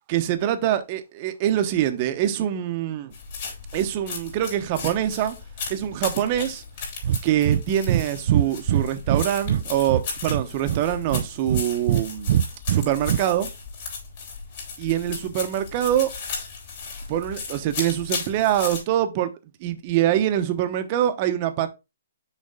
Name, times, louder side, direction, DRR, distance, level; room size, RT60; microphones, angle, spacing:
voice 1, 0.1-3.1 3.7-5.4 5.7-6.6 7.2-12.4 12.7-13.5 14.8-16.1 17.1-19.3 19.6-21.7, right 11 dB, 30° right, 0.9 m, -24 dB
sound 1, 3.1-18.8, left 5 dB, 45° left, 3.4 m, -35 dB
Breathing, 7.0-7.2 7.5-7.6 7.9-8.0 8.3-9.6 9.9-10.8 11.1-12.0 12.3-13.2, right 10 dB, 45° right, 0.4 m, -22 dB
6.6 x 5.1 x 3.6 m
hypercardioid pair, 160°, 0 cm